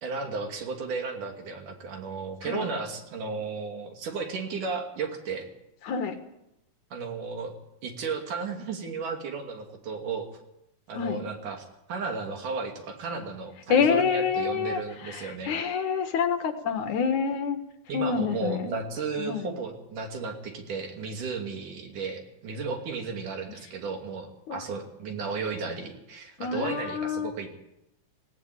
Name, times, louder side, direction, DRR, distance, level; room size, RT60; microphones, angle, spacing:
voice 1, 0.0-5.5 6.9-7.5 7.8-10.3 10.9-15.5 17.9-27.5, right 4 dB, 70° right, 4 dB, 4.1 m, -34 dB
voice 2, 5.8-6.2 10.9-11.2 13.7-17.6 17.9-18.7 19.2-19.5 24.5-24.6 26.4-27.3, left 6 dB, 65° left, 8 dB, 2.8 m, -27 dB
18.5 x 17.5 x 8.6 m, 0.86 s
omnidirectional pair, 3.8 m